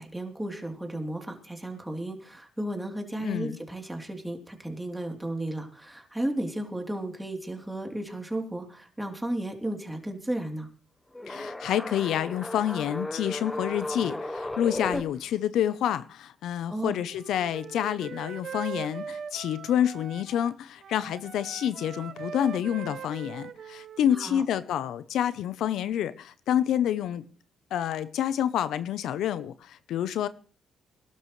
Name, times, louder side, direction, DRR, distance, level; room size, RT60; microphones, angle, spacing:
voice 1, 0.0-10.7 16.7-17.0 24.1-24.4, right 1 dB, 10° right, 3.2 m, -34 dB
voice 2, 3.2-3.6 11.3-27.2 27.7-30.3, left 10 dB, 80° left, 0.7 m, -28 dB
sound 1, 11.1-15.0, left 1 dB, 10° left, 1.3 m, -34 dB
Wind instrument woodwind instrument, 17.0-20.5 20.8-24.3, right 7 dB, 55° right, 0.7 m, -41 dB
22.0 x 12.0 x 3.2 m
cardioid pair, 90°, 0 cm